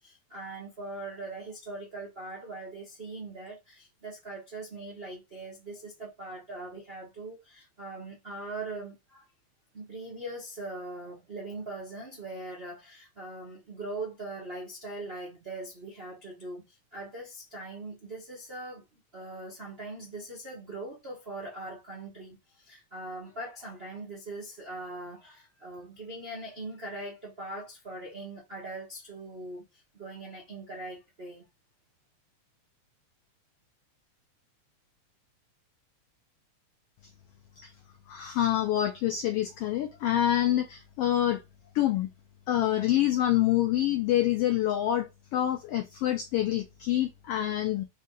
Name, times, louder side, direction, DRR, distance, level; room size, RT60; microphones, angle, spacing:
voice 1, 0.0-9.2 9.7-31.4, right 2 dB, 55° right, 0.6 m, -41 dB
voice 2, 38.1-41.4 41.7-42.1 42.5-47.8, left 12 dB, 85° left, 1.3 m, -26 dB
5.2 x 2.7 x 3.8 m
omnidirectional pair, 3.4 m